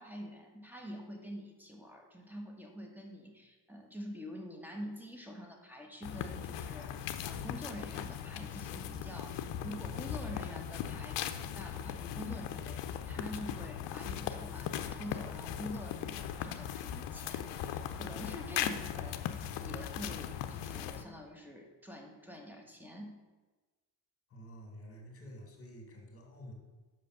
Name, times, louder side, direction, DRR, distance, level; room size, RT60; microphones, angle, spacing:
voice 1, 0.0-23.2, equal, 5° right, 2 dB, 1.3 m, -46 dB
sound 1, 6.0-21.0, left 9 dB, 60° left, 0.7 m, -39 dB
voice 2, 24.3-26.5, equal, 30° left, 1 dB, 2.4 m, -50 dB
5.8 x 5.1 x 6.5 m, 1.3 s
cardioid pair, 100°, 48 cm